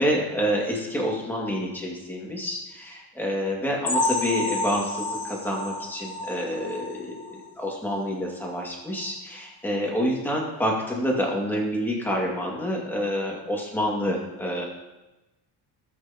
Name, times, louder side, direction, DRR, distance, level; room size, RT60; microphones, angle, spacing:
voice 1, 0.0-14.6, equal, 5° left, -3 dB, 2.2 m, -28 dB
sound 1, 3.9-7.5 7.9-8.0 8.4-8.5 9.0-9.1, left 2 dB, 40° left, 2.6 m, -30 dB
18.0 x 8.0 x 2.9 m, 1.0 s
cardioid pair, 170°, 37 cm